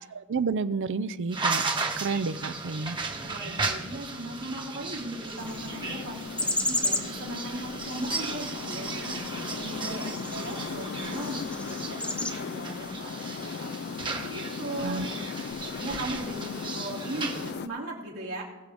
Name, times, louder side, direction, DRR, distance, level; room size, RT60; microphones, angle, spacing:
voice 1, 0.1-1.7 2.0-3.0 14.8-15.1, right 4 dB, 60° right, 15 dB, 0.5 m, -30 dB
sound 1, 1.3-17.5, right 3 dB, 20° right, 1.1 m, -35 dB
voice 2, 3.2-15.4 15.8-18.4, right 1 dB, 80° right, -4 dB, 3.0 m, -38 dB
sound 2, 5.2-12.3, left 2 dB, 5° left, 0.7 m, -35 dB
sound 3, 5.4-17.7, left 6 dB, 50° left, 0.3 m, -38 dB
21.0 x 7.5 x 3.6 m, 1.2 s
head